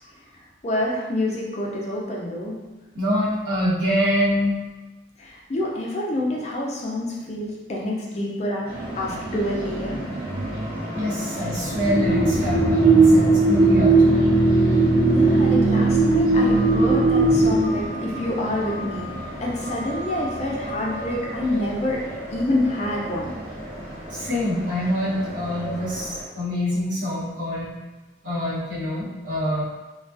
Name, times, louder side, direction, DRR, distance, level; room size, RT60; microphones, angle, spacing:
voice 1, 0.6-2.5 5.2-8.7 8.9-10.0 15.1-19.1 19.4-22.0 22.3-23.4, left 1 dB, 35° left, -3 dB, 0.4 m, -27 dB
voice 2, 2.9-4.6 10.9-14.4 24.1-27.7 28.2-29.6, equal, 90° right, -9 dB, 1.0 m, -25 dB
sound 1, 8.7-26.2, right 2 dB, 55° right, 0.8 m, -21 dB
2.3 x 2.3 x 2.4 m, 1.1 s
head